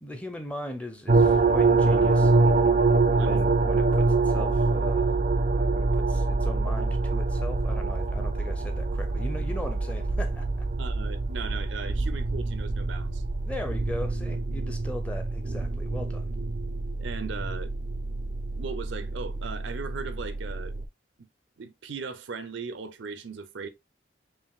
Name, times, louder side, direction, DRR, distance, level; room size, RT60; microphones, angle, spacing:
voice 1, 0.0-2.4 3.2-5.2 5.5-10.7 13.4-16.3, left 1 dB, 5° left, 0.6 m, -38 dB
sound 1, 1.1-20.8, right 3 dB, 45° right, 0.4 m, -25 dB
voice 2, 10.8-13.2 17.0-17.7 18.6-20.7 21.6-23.7, right 5 dB, 90° right, 0.6 m, -38 dB
5.7 x 2.6 x 2.3 m
head